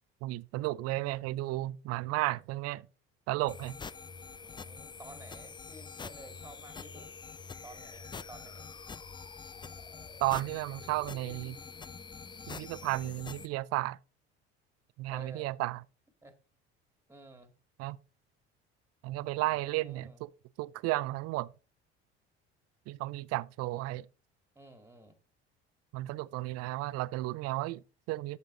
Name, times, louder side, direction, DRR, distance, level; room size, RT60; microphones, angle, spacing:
voice 1, 0.2-2.9 3.3-3.8 10.2-11.6 12.5-14.0 15.0-15.8 17.8-18.0 19.0-20.3 20.6-21.5 22.9-24.1 25.9-28.4, right 18 dB, 50° right, 0.5 m, -33 dB
sound 1, 3.5-13.5, left 5 dB, 15° left, 0.4 m, -46 dB
voice 2, 4.4-7.1 7.6-8.7 15.1-15.6 16.2-16.3 17.1-17.5 19.5-20.2 24.6-25.2, right 2 dB, 5° right, 2.0 m, -52 dB
8.2 x 6.7 x 3.8 m
hypercardioid pair, 65°, 32 cm